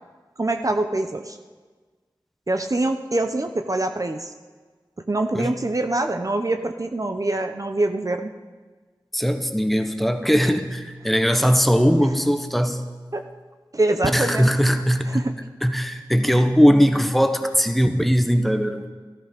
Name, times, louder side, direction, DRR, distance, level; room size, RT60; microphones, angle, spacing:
voice 1, 0.4-1.4 2.5-4.3 5.1-8.3 13.1-13.2 13.7-14.5 15.1-15.3, right 2 dB, 45° right, 6 dB, 0.8 m, -24 dB
voice 2, 9.1-12.8 14.1-15.3 15.6-18.9, equal, ahead, 7 dB, 1.2 m, -20 dB
14.5 x 13.5 x 5.3 m, 1.4 s
wide cardioid pair, 55°, 8 cm